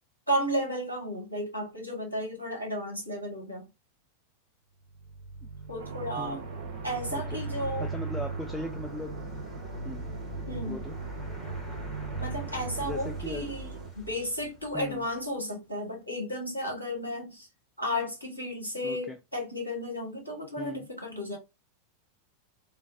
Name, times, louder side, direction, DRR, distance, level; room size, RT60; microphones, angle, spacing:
voice 1, 0.3-3.7 5.7-6.4 6.8-7.9 10.5-10.8 12.2-13.7 13.9-17.5 17.8-21.4, equal, 85° left, 1.2 m, -33 dB
sound 1, 4.9-15.2, right 3 dB, 20° left, 1.2 m, -38 dB
Thunder, 5.8-13.9, right 7 dB, 60° right, 0.5 m, -46 dB
voice 2, 7.1-7.4 7.8-9.1 9.8-10.0 10.7-11.0 12.8-13.5 14.7-15.0 18.8-19.2 20.6-20.9, left 1 dB, 5° left, 0.4 m, -38 dB
3.1 x 2.0 x 2.5 m
figure-of-eight pair, 90°, 0 cm